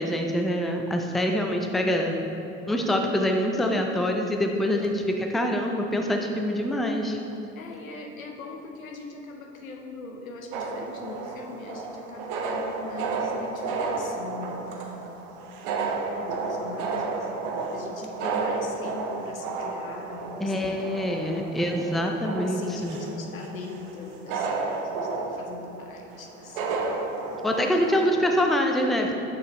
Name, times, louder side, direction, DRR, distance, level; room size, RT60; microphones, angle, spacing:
voice 1, 0.0-2.1 2.7-7.2 20.4-23.0 27.4-29.1, equal, ahead, 2 dB, 0.4 m, -25 dB
voice 2, 7.5-15.3 16.2-21.4 22.3-27.1, left 3 dB, 85° left, 2 dB, 0.7 m, -41 dB
sound 1, 10.5-28.0, right 4 dB, 60° right, 0.8 m, -32 dB
6.4 x 5.7 x 3.1 m, 2.7 s
figure-of-eight pair, 60°, 40 cm